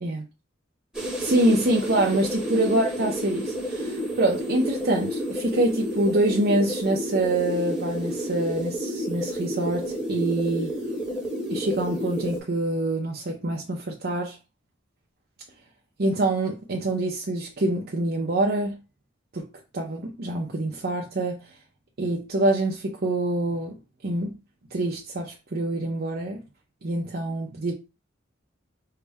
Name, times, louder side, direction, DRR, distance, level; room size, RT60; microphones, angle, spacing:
sound 1, 0.9-12.4, equal, 5° right, 1.1 m, -30 dB
voice 1, 1.2-10.8 11.5-14.4 16.0-18.8 19.3-19.5 19.7-21.4 22.0-23.8 24.0-24.4 24.7-26.4 26.8-27.7, right 1 dB, 55° right, 0.7 m, -25 dB
5.5 x 2.1 x 3.5 m
head